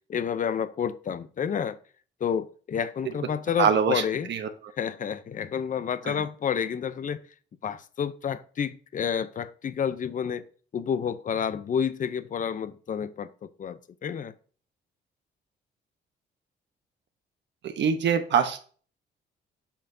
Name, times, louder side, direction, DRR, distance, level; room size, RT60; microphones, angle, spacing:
voice 1, 0.1-1.8 2.2-4.3 4.8-7.2 7.6-10.4 10.7-14.3, left 7 dB, 40° left, 0.6 m, -30 dB
voice 2, 3.6-4.0 4.3-4.5 6.0-6.2 17.6-18.7, right 7 dB, 65° right, 0.9 m, -24 dB
8.5 x 5.7 x 2.7 m
cardioid pair, 90°, 20 cm